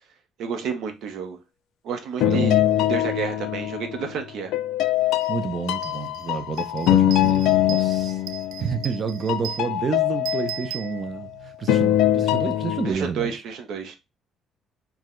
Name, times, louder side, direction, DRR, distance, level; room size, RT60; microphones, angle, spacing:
voice 1, 0.4-1.4 1.8-2.6 2.9-4.5 12.8-14.0, right 6 dB, 60° right, 0.7 m, -30 dB
sound 1, 2.2-4.1 4.5-9.0 9.3-11.2 11.7-12.9, left 12 dB, 80° left, 0.4 m, -23 dB
sound 2, 5.2-5.3 5.7-11.5, right 11 dB, 90° right, 0.3 m, -38 dB
voice 2, 5.3-8.2 8.6-11.3 11.6-13.3, right 5 dB, 30° right, 0.5 m, -29 dB
4.7 x 2.1 x 3.6 m
cardioid pair, 180°, 0 cm